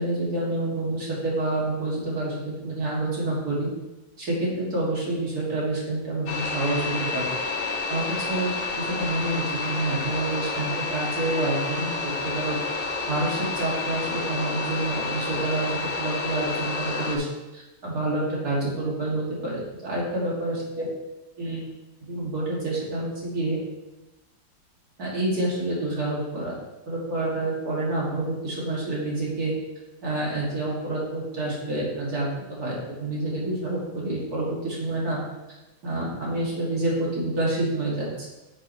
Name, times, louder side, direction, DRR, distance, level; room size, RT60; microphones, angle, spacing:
voice 1, 0.0-3.7 4.2-7.3 7.9-11.9 12.2-17.3 17.5-20.9 21.4-21.6 22.1-23.6 25.0-26.6 26.9-29.5 30.0-35.2 35.8-38.3, right 2 dB, 55° right, -5 dB, 2.9 m, -28 dB
sound 1, 6.3-17.2, left 4 dB, 40° left, 0.9 m, -30 dB
9.9 x 6.2 x 3.2 m, 1.1 s
omnidirectional pair, 2.0 m